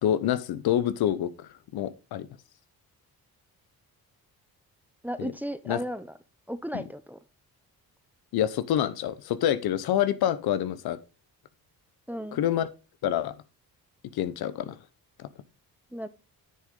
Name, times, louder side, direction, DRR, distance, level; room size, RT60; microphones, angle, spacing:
voice 1, 0.0-2.3 5.2-5.3 5.7-5.8 6.7-6.8 8.3-11.0 12.3-12.7 13.0-13.3 14.1-14.8 15.2-15.3, left 11 dB, 90° left, 0.9 m, -27 dB
voice 2, 5.0-6.1 6.5-7.2 12.1-12.4 15.9-16.1, equal, 5° right, 0.6 m, -34 dB
9.8 x 6.4 x 3.7 m
cardioid pair, 115°, 36 cm